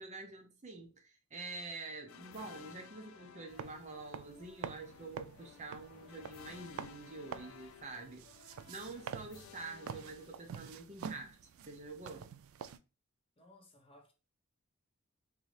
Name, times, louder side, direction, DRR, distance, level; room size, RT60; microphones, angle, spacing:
voice 1, 0.0-8.2 8.7-11.4 11.7-12.3, right 3 dB, 35° right, 0.6 m, -47 dB
sound 1, 2.1-11.0, left 6 dB, 85° left, 0.3 m, -56 dB
sound 2, 3.5-12.8, right 7 dB, 85° right, 0.3 m, -48 dB
voice 2, 13.4-14.1, left 1 dB, 25° left, 0.7 m, -60 dB
3.7 x 2.7 x 3.2 m
head